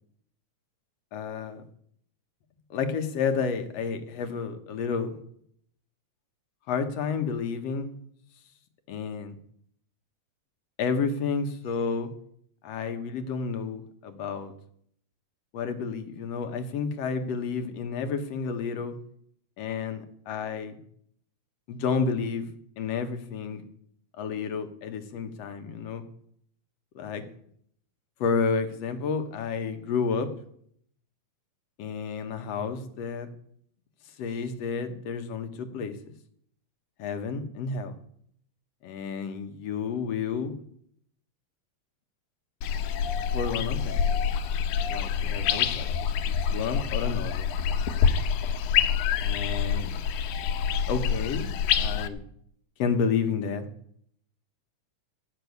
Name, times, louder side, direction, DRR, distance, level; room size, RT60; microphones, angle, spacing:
voice 1, 1.1-1.6 2.7-5.2 6.7-7.9 8.9-9.4 10.8-12.1 12.6-14.5 15.5-19.0 19.6-20.7 21.7-22.5 22.8-23.7 24.2-26.0 27.0-27.2 28.2-30.3 31.8-33.3 34.2-36.0 37.0-38.0 38.8-40.5 43.3-44.0 44.9-47.5 49.2-49.9 50.9-52.2 52.8-53.7, left 5 dB, 65° left, 7 dB, 2.2 m, -30 dB
sound 1, 42.6-52.1, left 7 dB, 90° left, 2.3 m, -26 dB
13.5 x 6.8 x 9.4 m, 0.69 s
omnidirectional pair, 3.4 m